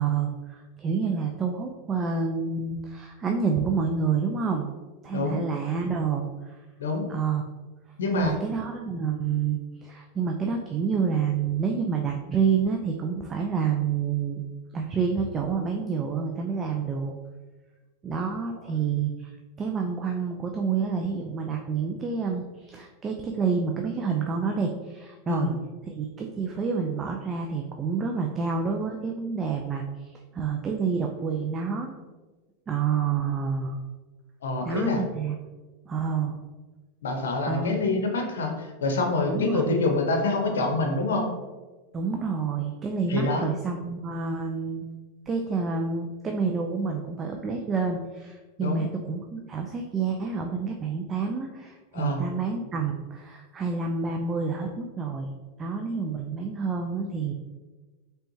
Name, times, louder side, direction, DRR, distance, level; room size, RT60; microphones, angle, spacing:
voice 1, 0.0-4.7 5.0-6.6 7.1-7.4 8.1-14.4 14.7-17.2 18.0-19.3 19.6-25.5 25.9-31.9 32.7-33.8 34.7-35.4 35.9-36.4 37.5-37.8 39.3-39.8 41.9-44.9 45.3-55.3 55.6-57.3, right 5 dB, 25° right, 2 dB, 0.4 m, -28 dB
voice 2, 8.0-8.4 25.3-25.5 34.4-35.0 37.0-41.3 43.1-43.5 48.6-48.8 51.9-52.2, left 3 dB, 90° left, 3 dB, 0.8 m, -26 dB
4.2 x 3.4 x 2.7 m, 1.2 s
hypercardioid pair, 120°, 0 cm